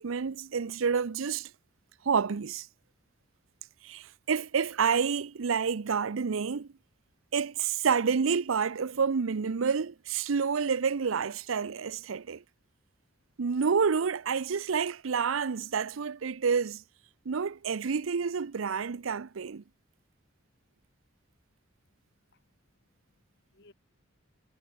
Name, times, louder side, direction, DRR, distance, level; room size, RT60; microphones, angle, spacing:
voice 1, 0.0-1.5 2.0-2.7 3.8-6.7 7.3-12.4 13.4-16.8 17.3-19.6, right 6 dB, 90° right, 0.6 m, -29 dB
voice 2, 21.8-23.7, left 2 dB, 60° left, 2.5 m, -65 dB
head